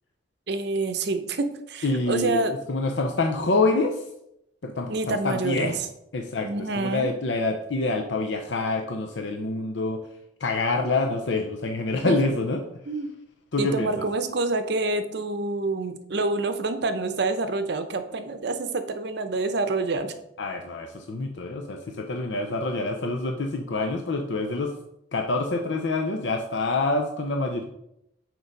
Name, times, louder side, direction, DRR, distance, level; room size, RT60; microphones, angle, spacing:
voice 1, 0.5-2.5 4.9-5.7 6.4-7.1 12.0-12.2 12.9-13.1 13.6-20.1, right 3 dB, 60° right, 9 dB, 0.7 m, -27 dB
voice 2, 1.8-2.4 2.7-4.0 4.6-5.8 6.1-10.1 10.4-12.6 13.5-14.1 20.4-24.8 25.1-27.6, left 3 dB, 70° left, 4 dB, 0.6 m, -26 dB
6.6 x 4.5 x 5.2 m, 0.80 s
head